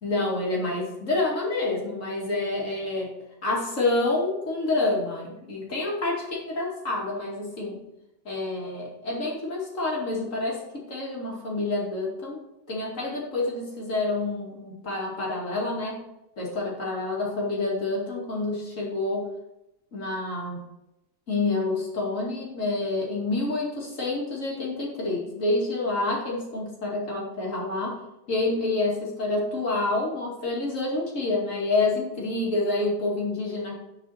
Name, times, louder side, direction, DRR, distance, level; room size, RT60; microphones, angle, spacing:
voice 1, 0.0-3.1 3.4-7.8 8.2-16.0 16.4-19.3 19.9-20.6 21.3-28.0 28.3-33.8, left 2 dB, 45° left, -4 dB, 2.6 m, -28 dB
11.0 x 4.8 x 4.2 m, 0.89 s
omnidirectional pair, 1.9 m